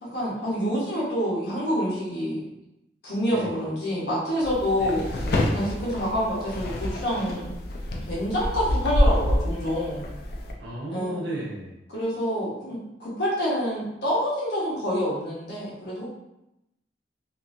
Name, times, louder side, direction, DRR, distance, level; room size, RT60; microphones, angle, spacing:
voice 1, 0.0-2.4 3.0-5.0 5.5-7.5 8.0-10.0 10.9-11.2 11.9-16.1, equal, 75° left, -6 dB, 1.1 m, -27 dB
sound 1, 4.4-10.5, left 1 dB, 60° left, 0.4 m, -27 dB
voice 2, 10.6-11.7, right 1 dB, 85° right, -4 dB, 0.9 m, -34 dB
2.9 x 2.6 x 2.5 m, 0.87 s
head